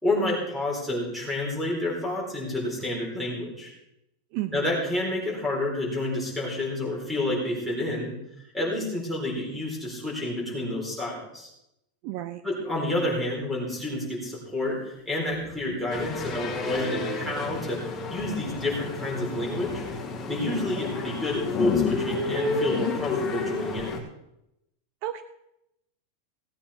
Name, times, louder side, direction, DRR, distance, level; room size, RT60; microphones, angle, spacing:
voice 1, 0.0-3.7 4.5-8.2 8.5-11.5 12.4-19.8 20.3-24.0, left 1 dB, ahead, -3 dB, 4.4 m, -29 dB
voice 2, 4.3-4.6 12.0-12.4 25.0-25.2, right 14 dB, 45° right, 10 dB, 0.7 m, -32 dB
sound 1, 15.3-17.2 18.2-18.7 19.2-20.0 20.6-24.0, left 11 dB, 35° left, 0.8 m, -34 dB
sound 2, 15.9-24.0, left 3 dB, 20° left, 2.4 m, -32 dB
17.0 x 9.0 x 4.3 m, 0.83 s
supercardioid pair, 160°, 0 cm